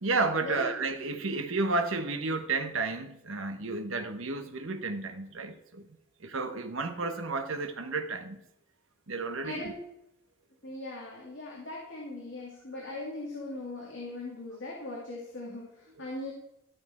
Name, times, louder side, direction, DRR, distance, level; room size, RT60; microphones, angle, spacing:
voice 1, 0.0-5.9 6.2-8.4 9.1-9.7, right 3 dB, 70° right, 1.1 m, -32 dB
voice 2, 9.4-9.8 10.6-16.3, left 2 dB, 55° left, 2.4 m, -39 dB
13.5 x 6.6 x 4.3 m
head